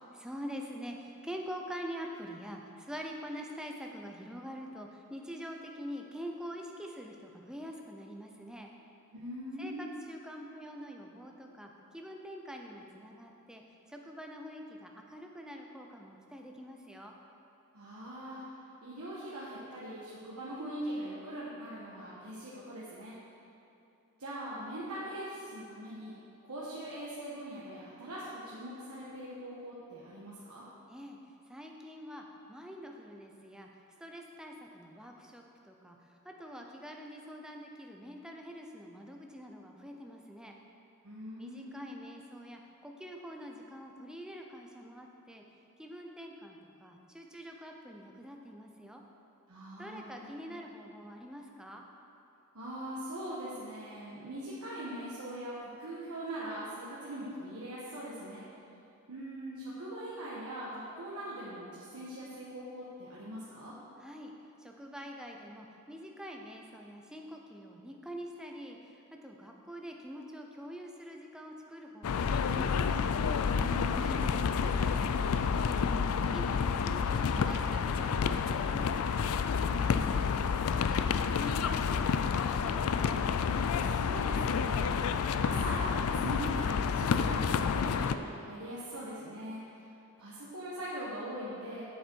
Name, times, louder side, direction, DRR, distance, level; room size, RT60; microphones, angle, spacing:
voice 1, 0.1-8.7 9.6-13.6 13.9-17.2 30.9-31.2 31.5-33.7 34.0-40.6 41.4-45.4 45.8-49.0 49.8-51.9 64.0-64.3 64.6-73.0 73.7-79.0 79.8-83.2, equal, 5° right, 1 dB, 0.7 m, -45 dB
voice 2, 9.1-10.0 17.7-18.4 18.8-23.1 24.2-26.1 26.4-30.6 41.0-42.0 49.5-50.2 52.5-58.4 59.1-63.7 73.5-74.5 79.5-80.3 83.8-84.9 85.4-89.6 90.2-91.8, right 1 dB, 85° right, -8 dB, 1.3 m, -41 dB
sound 1, 72.0-88.2, left 6 dB, 75° left, 0.4 m, -29 dB
7.9 x 7.8 x 4.6 m, 2.8 s
head